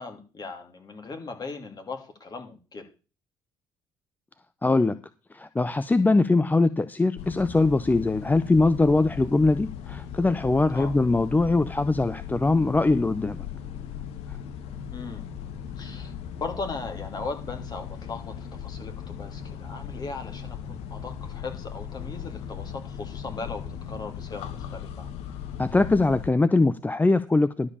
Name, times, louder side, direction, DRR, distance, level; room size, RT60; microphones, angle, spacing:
voice 1, 0.0-2.9 10.7-10.9 14.9-15.2 15.8-16.1 16.4-25.1, left 3 dB, 40° left, 4 dB, 2.7 m, -38 dB
voice 2, 4.6-5.0 5.3-13.4 25.6-27.7, left 3 dB, 15° left, 14 dB, 0.6 m, -22 dB
sound 1, 7.2-26.3, left 8 dB, 70° left, 1.2 m, -38 dB
12.0 x 5.0 x 7.2 m, 0.35 s
hypercardioid pair, 55°, 11 cm